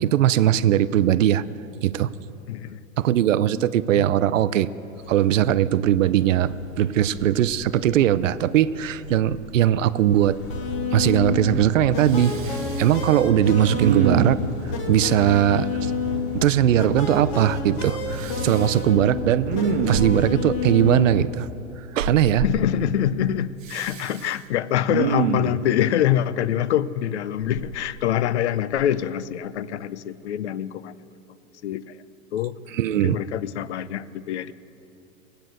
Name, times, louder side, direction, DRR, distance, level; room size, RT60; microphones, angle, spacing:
voice 1, 0.0-1.4 1.8-2.1 3.0-4.7 5.1-10.4 10.9-14.4 14.9-15.9 16.3-19.5 19.9-21.5 21.9-22.4 32.7-33.2, right 11 dB, 60° right, 16 dB, 0.6 m, -20 dB
voice 2, 2.5-2.8 4.0-4.1 22.4-31.0 31.6-32.0 32.3-32.6 33.0-34.5, left 11 dB, 50° left, 18 dB, 0.5 m, -25 dB
sound 1, 4.9-20.3, left 2 dB, 85° left, 3.3 m, -42 dB
Respiratory sounds, 10.4-10.7 10.9-11.7 12.0-13.1 13.7-14.5 18.1-18.8 19.3-20.4 22.0-22.6 23.6-24.3 24.8-25.6 27.4-28.3 28.8-28.9, right 6 dB, 35° right, 1.1 m, -28 dB
sound 2, 10.5-21.3, left 4 dB, 30° left, 1.2 m, -29 dB
19.0 x 9.2 x 7.9 m, 3.0 s
hypercardioid pair, 165°, 43 cm